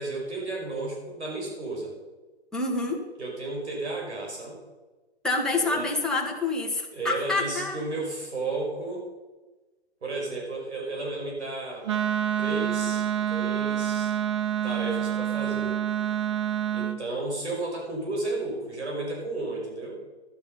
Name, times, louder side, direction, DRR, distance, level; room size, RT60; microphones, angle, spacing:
voice 1, 0.0-1.9 3.2-4.6 5.5-5.9 6.9-9.1 10.0-11.9 12.4-14.1 14.6-15.8 16.7-20.0, right 2 dB, 85° right, 0 dB, 5.3 m, -33 dB
voice 2, 2.5-3.0 5.2-7.8, left 2 dB, ahead, -1 dB, 1.2 m, -27 dB
Wind instrument woodwind instrument, 11.9-17.0, right 10 dB, 30° right, 0.4 m, -27 dB
12.0 x 10.0 x 5.4 m, 1.2 s
hypercardioid pair, 145°, 33 cm